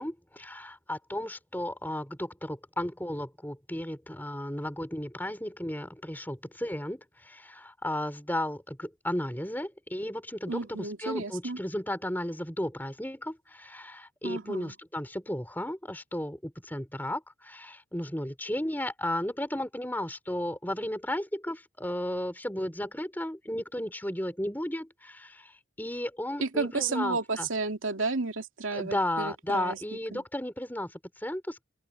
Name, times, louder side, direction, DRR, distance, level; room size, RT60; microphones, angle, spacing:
voice 1, 0.0-27.5 28.7-31.6, left 1 dB, 10° left, 4.1 m, -34 dB
voice 2, 10.5-11.6 14.2-14.7 26.4-29.8 30.1-30.2, right 3 dB, 80° right, 2.5 m, -32 dB
open air
head